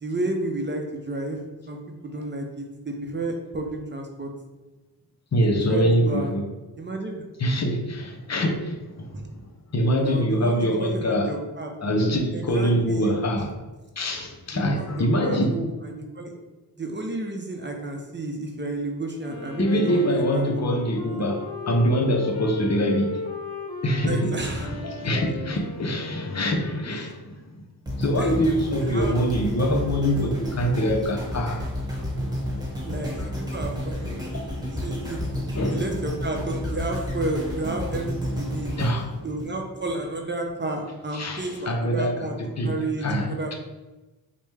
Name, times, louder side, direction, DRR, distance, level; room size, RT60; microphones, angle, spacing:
voice 1, 0.0-1.4 1.7-4.3 5.7-6.3 6.8-7.2 9.1-9.2 10.0-12.0 12.3-13.1 14.5-16.3 16.8-21.3 24.1-24.7 28.2-28.3 28.8-29.1 32.8-34.2 34.6-35.3 35.7-38.7 39.2-42.3 42.6-43.5, right 2 dB, 30° right, 2 dB, 0.6 m, -32 dB
voice 2, 5.3-6.5 7.4-9.4 9.7-11.3 11.8-13.5 14.0-15.6 19.6-23.2 23.8-27.6 28.0-31.7 32.9-33.3 34.3-34.5 35.5-35.8 38.7-39.2 41.1-43.5, equal, 45° left, 2 dB, 0.7 m, -24 dB
Wind instrument woodwind instrument, 19.2-26.9, left 3 dB, 75° left, 0.8 m, -36 dB
sound 1, 27.9-40.1 40.6-40.7, equal, 10° right, 1.4 m, -30 dB
4.8 x 2.2 x 3.2 m, 1.1 s
cardioid pair, 50°, 39 cm